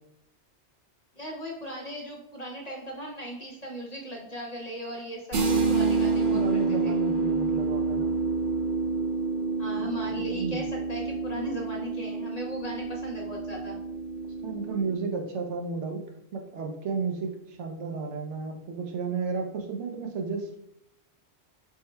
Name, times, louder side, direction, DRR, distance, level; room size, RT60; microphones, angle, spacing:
voice 1, 1.2-7.0 9.6-13.8, equal, 45° left, -1 dB, 0.6 m, -38 dB
sound 1, 5.3-14.9, right 4 dB, 55° right, 0.7 m, -28 dB
voice 2, 5.5-6.0 6.3-8.1 10.1-10.6 14.4-16.0 16.3-20.6, right 4 dB, 85° right, 3 dB, 1.0 m, -33 dB
3.7 x 2.1 x 4.3 m, 0.78 s
omnidirectional pair, 1.2 m